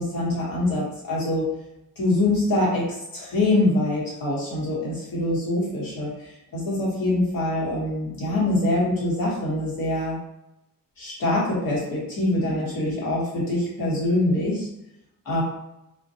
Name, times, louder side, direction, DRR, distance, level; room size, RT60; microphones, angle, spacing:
voice 1, 0.0-1.5 2.0-6.1 6.5-10.2 11.0-14.7 15.3-15.4, left 1 dB, 80° left, -6 dB, 1.1 m, -24 dB
2.2 x 2.1 x 2.6 m, 0.87 s
wide cardioid pair, 150°, 34 cm